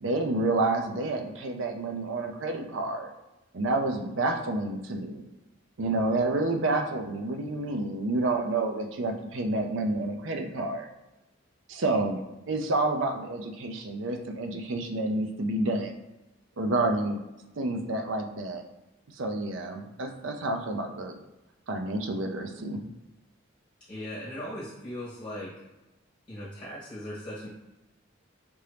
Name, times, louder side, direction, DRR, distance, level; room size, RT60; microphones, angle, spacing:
voice 1, 0.0-3.1 3.5-5.2 5.8-10.9 11.7-12.2 12.5-15.9 16.6-17.2 17.6-18.6 19.1-21.2 21.7-22.8, right 2 dB, 70° right, 4 dB, 0.5 m, -29 dB
voice 2, 23.9-25.6 26.3-27.5, left 1 dB, 25° left, -9 dB, 1.3 m, -38 dB
5.2 x 2.9 x 3.3 m, 1.0 s
head